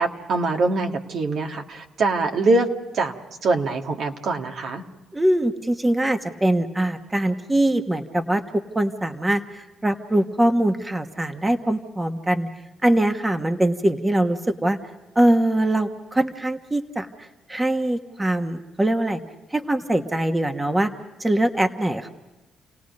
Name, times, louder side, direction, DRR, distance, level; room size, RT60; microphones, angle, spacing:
voice 1, 0.0-2.7 2.9-3.1 3.4-4.8, right 3 dB, 65° right, 3 dB, 1.8 m, -23 dB
voice 2, 5.1-8.4 8.7-12.5 12.8-14.8 15.1-19.2 19.5-20.9 21.2-22.1, right 1 dB, 15° right, 6 dB, 1.3 m, -22 dB
29.5 x 18.0 x 5.3 m, 1.1 s
cardioid pair, 90°, 0 cm